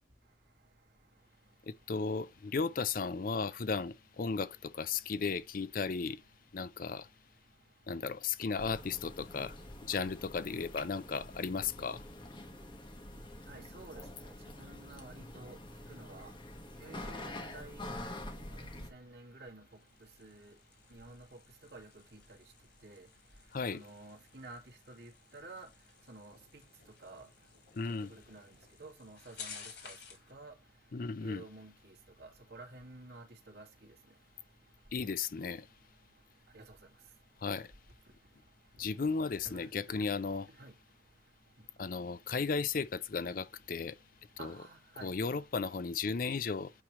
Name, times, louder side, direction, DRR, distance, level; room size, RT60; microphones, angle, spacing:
voice 1, 1.7-6.2 6.5-7.1 7.9-9.6 9.8-12.0 23.5-23.8 27.8-28.1 30.9-31.4 34.9-35.6 37.4-37.7 38.8-40.5 41.8-44.0 44.4-44.6 45.0-46.7, left 5 dB, 50° left, 0.5 m, -35 dB
sound 1, 8.6-18.9, left 1 dB, 25° left, 1.3 m, -46 dB
voice 2, 13.5-14.0 14.6-15.6 15.9-16.3 16.8-17.8 18.2-18.6 18.9-19.6 20.2-20.5 20.9-21.4 21.7-22.2 22.8-23.1 23.7-24.6 24.9-25.7 26.1-26.6 27.0-27.3 28.1-28.5 28.8-30.0 30.3-30.5 31.2-31.7 32.2-33.7 36.5-36.6 39.4-40.0 40.6-40.7 44.4-45.1, right 2 dB, 65° right, 2.2 m, -51 dB
sound 2, 19.6-30.3, left 6 dB, 70° left, 2.7 m, -55 dB
8.6 x 3.3 x 6.1 m
head